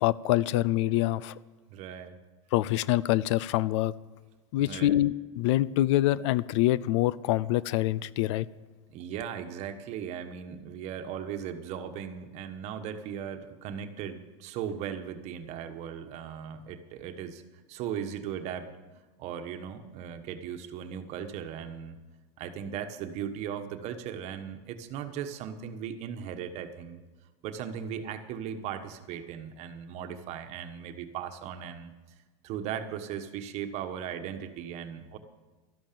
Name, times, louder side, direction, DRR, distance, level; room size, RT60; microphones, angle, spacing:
voice 1, 0.0-1.3 2.5-3.9 4.5-8.5, left 15 dB, 70° left, 20 dB, 0.5 m, -25 dB
voice 2, 1.7-2.2 4.6-5.0 8.9-17.4 17.7-18.7 19.2-22.0 22.4-27.0 27.4-31.9 32.4-35.2, right 8 dB, 45° right, 8 dB, 1.3 m, -37 dB
13.0 x 11.5 x 6.9 m, 1.2 s
supercardioid pair, 140°, 16 cm